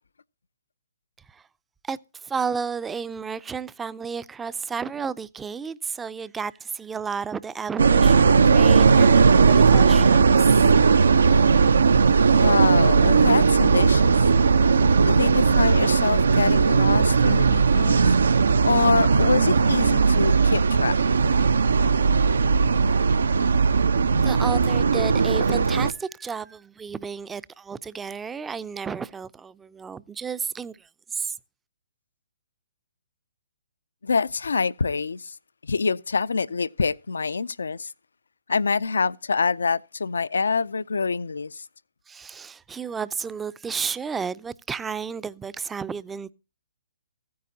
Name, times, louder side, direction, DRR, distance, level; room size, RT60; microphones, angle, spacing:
voice 1, 1.8-10.5 24.2-31.3 42.1-46.3, right 6 dB, 10° right, 0.4 m, -32 dB
sound 1, 7.8-25.9, right 5 dB, 75° right, 0.6 m, -18 dB
voice 2, 12.3-14.3 15.0-18.2 18.6-21.0 34.0-35.3 35.6-37.9 38.5-41.6, left 4 dB, 80° left, 0.5 m, -25 dB
15.5 x 9.4 x 2.7 m
hypercardioid pair, 140°, 0 cm